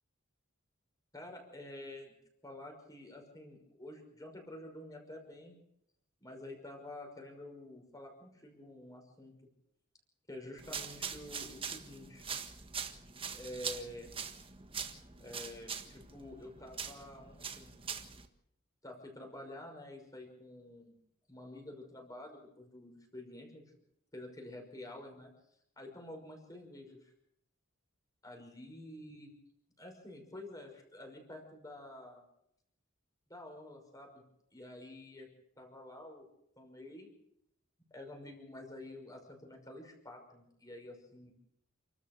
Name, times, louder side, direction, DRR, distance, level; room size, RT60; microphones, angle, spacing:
voice 1, 1.1-2.1 2.4-5.5 6.2-9.3 10.3-12.3 13.3-14.1 15.2-17.7 18.8-20.9 21.3-23.6 24.1-25.3 25.8-27.1 28.2-29.3 29.8-32.2 33.3-34.2 34.5-35.3 35.6-36.2 36.6-37.1 37.9-41.3, left 1 dB, 15° left, 2 dB, 5.8 m, -49 dB
sound 1, 10.6-18.3, right 6 dB, 25° right, 1.5 m, -43 dB
29.0 x 13.5 x 6.8 m, 0.78 s
head